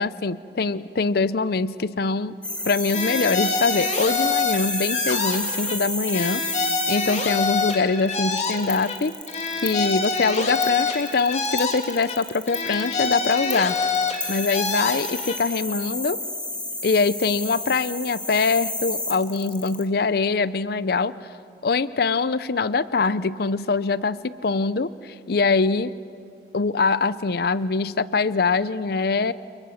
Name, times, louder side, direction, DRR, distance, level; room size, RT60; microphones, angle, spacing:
voice 1, 0.0-2.3 2.6-6.4 6.9-9.1 9.6-13.8 14.3-16.2 16.8-21.1 21.6-25.9 26.5-29.3, left 4 dB, 60° left, 16 dB, 0.6 m, -23 dB
sound 1, 2.4-19.8, left 2 dB, 5° left, 2.2 m, -31 dB
sound 2, 2.9-5.8 6.1-9.0 9.3-12.2 12.5-15.4, left 4 dB, 40° left, 2.7 m, -26 dB
29.0 x 28.5 x 7.1 m, 2.4 s
head